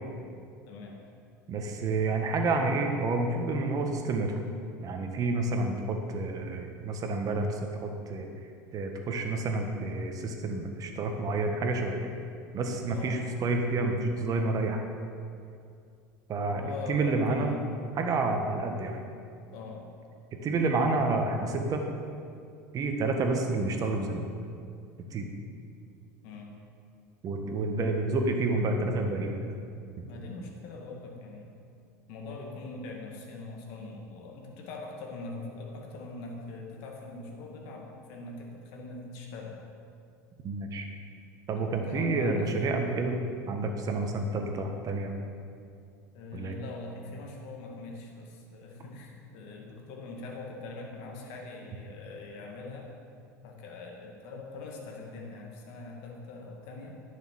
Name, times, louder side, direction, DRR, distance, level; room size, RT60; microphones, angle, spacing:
voice 1, 0.7-1.0 12.9-13.2 16.5-17.6 19.5-19.9 26.2-26.6 30.0-31.6 32.1-39.6 41.6-42.7 46.1-52.9 53.4-56.9, left 3 dB, 65° left, 0 dB, 2.1 m, -42 dB
voice 2, 1.5-4.4 4.8-8.3 8.7-12.1 12.5-14.8 16.3-16.6 16.9-17.5 18.0-19.0 20.4-21.8 22.7-24.3 25.1-25.3 27.2-29.3 40.4-40.9 41.5-43.2 43.5-45.1 46.3-46.5, right 3 dB, 40° right, 4 dB, 1.6 m, -29 dB
10.5 x 6.7 x 6.5 m, 2.4 s
hypercardioid pair, 85°, 9 cm